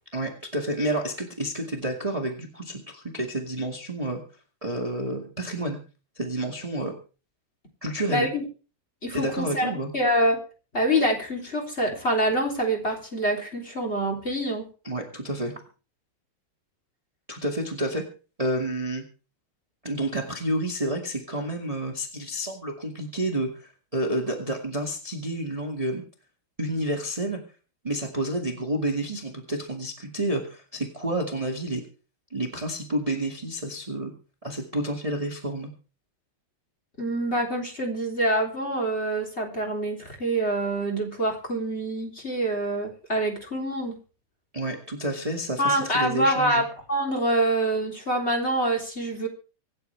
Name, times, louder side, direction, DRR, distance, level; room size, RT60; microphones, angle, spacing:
voice 1, 0.1-4.2 4.6-5.8 6.1-6.9 7.8-8.3 9.1-9.9 14.8-15.5 17.3-18.0 18.4-19.0 19.8-26.0 26.6-27.4 27.8-31.8 32.3-34.1 34.4-35.7 44.5-46.6, right 1 dB, 20° right, 2 dB, 1.0 m, -29 dB
voice 2, 8.1-8.4 9.0-10.4 10.7-14.7 37.0-44.0 45.6-49.3, right 1 dB, 15° left, 0 dB, 3.1 m, -26 dB
25.5 x 9.6 x 3.5 m, 0.35 s
omnidirectional pair, 4.6 m